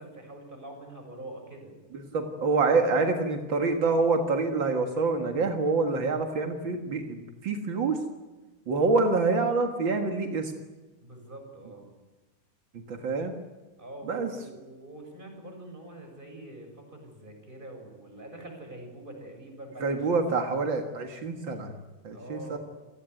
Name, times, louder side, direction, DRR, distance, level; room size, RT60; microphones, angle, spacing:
voice 1, 0.0-1.7 11.0-11.9 13.8-20.6 21.4-21.5 22.1-22.6, right 1 dB, 10° right, 3 dB, 6.5 m, -45 dB
voice 2, 1.9-8.0 8.6-10.5 12.7-13.3 14.1-14.3 19.8-21.7 22.0-22.6, right 3 dB, 65° right, 4 dB, 1.2 m, -26 dB
28.5 x 18.0 x 9.5 m, 1.2 s
omnidirectional pair, 5.2 m